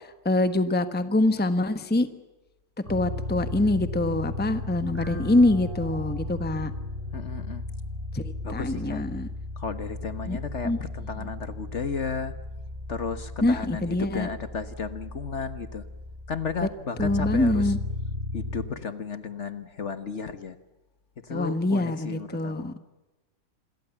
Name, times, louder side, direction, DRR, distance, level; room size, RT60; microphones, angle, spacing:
voice 1, 0.2-2.1 2.9-6.7 8.1-9.3 10.3-10.4 10.6-10.8 11.2-11.3 13.4-14.3 16.6-16.7 17.0-17.8 21.3-22.7, left 2 dB, 5° left, 10 dB, 1.1 m, -25 dB
sound 1, 2.8-18.6, left 2 dB, 30° right, 5.1 m, -35 dB
voice 2, 7.1-7.7 8.4-9.0 9.6-12.3 12.9-15.8 16.3-17.7 18.3-20.6 21.3-22.7, left 5 dB, 45° left, 11 dB, 1.5 m, -34 dB
27.5 x 22.5 x 7.2 m, 1.1 s
omnidirectional pair, 1.7 m